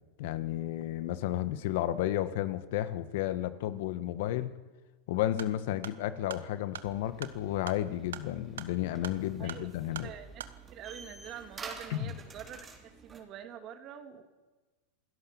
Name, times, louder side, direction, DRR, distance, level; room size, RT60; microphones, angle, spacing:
voice 1, 0.2-4.5 5.1-10.1 11.9-12.1, left 13 dB, 65° left, 12 dB, 1.6 m, -32 dB
sound 1, 5.3-10.6, right 9 dB, 90° right, 1.3 m, -45 dB
sound 2, 6.8-13.2, right 4 dB, 20° right, 3.5 m, -50 dB
voice 2, 10.0-14.2, right 9 dB, 40° right, 6 dB, 2.8 m, -46 dB
28.0 x 16.5 x 7.4 m, 1.2 s
hypercardioid pair, 115°, 0 cm